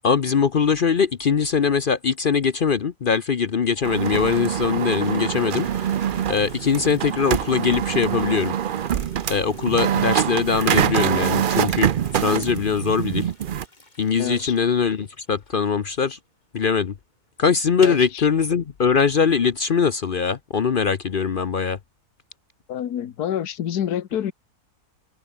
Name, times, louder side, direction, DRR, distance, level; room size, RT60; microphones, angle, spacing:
voice 1, 0.0-5.7 6.3-8.5 9.3-13.3 14.0-16.2 16.5-16.9 17.4-21.8, left 6 dB, 45° left, 0.7 m, -21 dB
sound 1, 3.8-13.6, right 9 dB, 75° right, 0.4 m, -24 dB
Toilet flush, 5.0-16.3 16.5-16.6 16.9-17.0 17.7-18.2, left 2 dB, 30° left, 3.0 m, -44 dB
voice 2, 14.2-14.6 17.8-18.3 22.7-24.3, left 10 dB, 80° left, 1.6 m, -27 dB
omnidirectional pair, 1.6 m